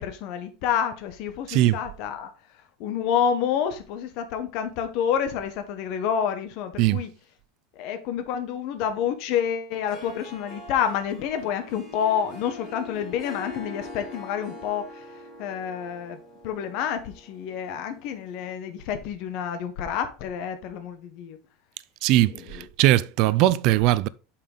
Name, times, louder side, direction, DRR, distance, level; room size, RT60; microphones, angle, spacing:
voice 1, 0.0-2.3 2.8-7.1 7.8-15.0 15.4-16.2 16.4-21.4, left 8 dB, 50° left, 0.9 m, -28 dB
voice 2, 1.5-1.8 6.8-7.0 22.0-24.1, right 15 dB, 45° right, 0.4 m, -20 dB
Harp, 9.7-18.3, left 1 dB, 15° left, 4.2 m, -43 dB
6.7 x 5.6 x 3.8 m
supercardioid pair, 165°, 0 cm